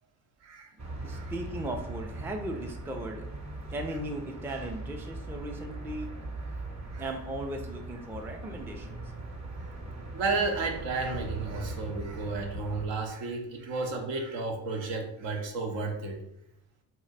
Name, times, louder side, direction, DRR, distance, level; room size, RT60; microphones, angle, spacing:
voice 1, 0.4-0.7 1.1-1.3 6.9-7.0 9.6-9.7 10.1-16.2, right 3 dB, 65° right, 3 dB, 0.8 m, -32 dB
sound 1, 0.8-12.9, right 2 dB, 35° right, 0.8 m, -40 dB
voice 2, 1.0-3.2 3.7-6.1 7.0-9.1, right 1 dB, 5° right, 3 dB, 0.4 m, -37 dB
2.6 x 2.1 x 4.0 m, 0.79 s
hypercardioid pair, 45°, 48 cm